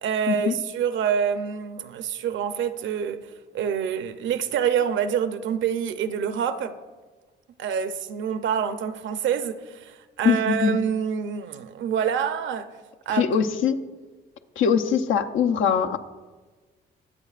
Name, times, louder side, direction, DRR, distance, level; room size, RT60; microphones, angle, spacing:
voice 1, 0.0-3.3 3.5-6.7 7.6-12.7 13.1-13.3, right 8 dB, 70° right, 0.7 m, -26 dB
voice 2, 10.2-10.8 13.1-13.8 14.6-16.0, left 7 dB, 80° left, 0.8 m, -22 dB
22.5 x 7.9 x 2.5 m
cardioid pair, 90°, 20 cm